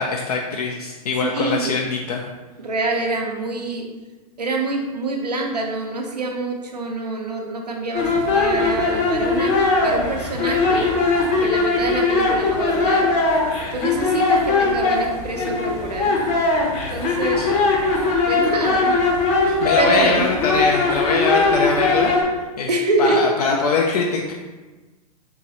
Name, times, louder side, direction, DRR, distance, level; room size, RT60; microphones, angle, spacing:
voice 1, 0.0-2.2 17.4-17.5 19.5-22.7 23.0-24.3, left 4 dB, 70° left, 1 dB, 0.5 m, -23 dB
voice 2, 1.2-1.8 2.6-3.9 4.4-9.5 9.8-10.9 11.4-13.1 13.7-16.2 16.9-17.4 18.2-19.0 19.8-20.3 22.7-23.2 23.5-23.6, right 2 dB, 90° right, 1 dB, 0.7 m, -25 dB
sound 1, 7.9-22.2, left 3 dB, 30° left, 0.7 m, -20 dB
3.9 x 3.0 x 2.8 m, 1.2 s
figure-of-eight pair, 105°, 20 cm